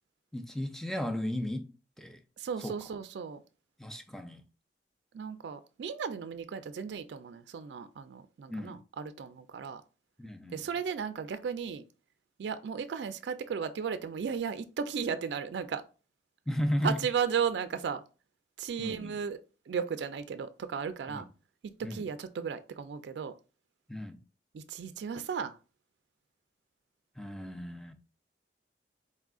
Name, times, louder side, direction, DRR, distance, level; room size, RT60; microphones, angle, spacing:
voice 1, 0.3-2.2 2.6-2.9 3.8-4.4 8.5-8.8 10.2-10.6 16.5-17.0 18.8-19.2 21.1-21.2 21.8-22.1 23.9-24.2 27.2-27.9, equal, ahead, 0.4 m, -35 dB
voice 2, 2.4-3.4 5.1-9.8 10.5-11.8 12.4-15.8 16.8-18.0 18.6-19.4 19.7-21.3 21.9-23.3 24.5-25.6, right 6 dB, 75° right, 0.3 m, -35 dB
4.2 x 3.6 x 2.3 m
head